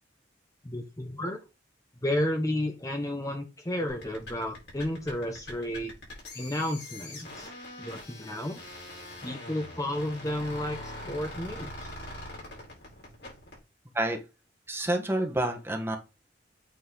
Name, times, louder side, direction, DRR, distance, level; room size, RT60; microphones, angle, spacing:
voice 1, 0.6-1.4 2.0-5.9 6.3-7.5 7.8-8.6 9.2-11.9, left 1 dB, 20° left, 4 dB, 0.8 m, -32 dB
sound 1, 3.9-13.6, left 1 dB, 60° left, 4.4 m, -43 dB
voice 2, 14.7-16.0, right 1 dB, 15° right, 3 dB, 1.3 m, -28 dB
8.3 x 4.1 x 3.8 m, 0.30 s
head